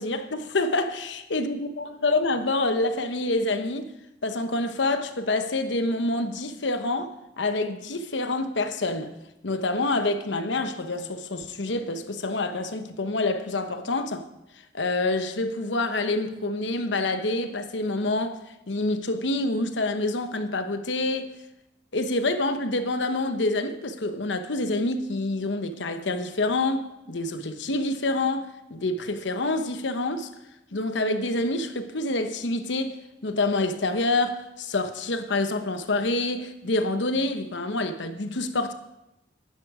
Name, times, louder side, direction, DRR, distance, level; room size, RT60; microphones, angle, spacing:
voice 1, 0.0-3.9 4.2-9.2 9.4-14.3 14.7-18.4 18.7-21.3 21.9-30.3 30.7-38.7, left 2 dB, 85° left, 1.0 m, -27 dB
12.0 x 10.5 x 4.9 m
head